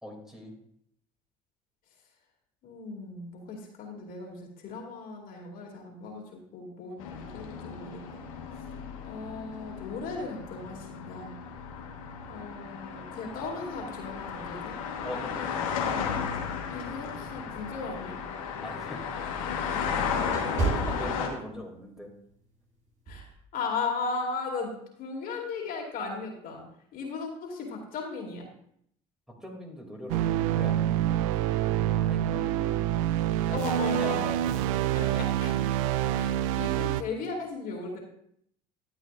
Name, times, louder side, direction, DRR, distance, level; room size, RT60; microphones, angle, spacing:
voice 1, 0.0-0.5 15.0-15.7 18.6-19.5 20.4-22.1 29.3-31.7 32.0-32.8 33.8-34.7 35.5-35.7, equal, 5° right, 0 dB, 2.7 m, -42 dB
voice 2, 2.6-8.2 8.5-8.6 9.0-11.4 12.3-14.8 16.7-18.2 19.7-20.6 23.1-26.7 26.9-28.5 33.5-34.3 34.9-35.8 36.1-38.0, left 4 dB, 60° left, 0 dB, 2.5 m, -37 dB
sound 1, 7.0-21.3, left 6 dB, 90° left, 1.4 m, -34 dB
sound 2, 18.1-21.8 22.2-22.5 23.1-23.3, right 3 dB, 50° right, 3.9 m, -33 dB
sound 3, 30.1-37.0, right 12 dB, 85° right, 0.4 m, -27 dB
13.0 x 8.3 x 2.5 m, 0.68 s
hypercardioid pair, 75°, 17 cm